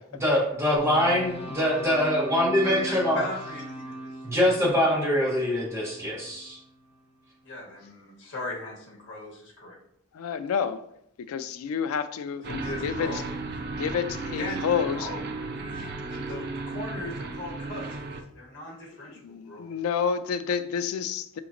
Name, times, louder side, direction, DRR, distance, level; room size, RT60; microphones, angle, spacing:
voice 1, 0.1-3.2 4.2-6.6, left 1 dB, 15° right, -6 dB, 1.4 m, -24 dB
sound 1, 0.7-7.0, equal, 30° left, 0.7 m, -40 dB
voice 2, 2.6-4.1 7.4-9.8 12.4-13.4 14.2-14.6 14.9-15.3 15.6-17.9 18.3-19.7, left 2 dB, 60° left, -2 dB, 1.1 m, -38 dB
voice 3, 10.2-10.8 11.3-13.1 13.8-15.1 19.2-21.4, left 7 dB, 85° left, 11 dB, 0.3 m, -29 dB
sound 2, 12.4-18.2, right 3 dB, 50° right, 0.4 m, -34 dB
5.0 x 2.9 x 2.5 m, 0.73 s
head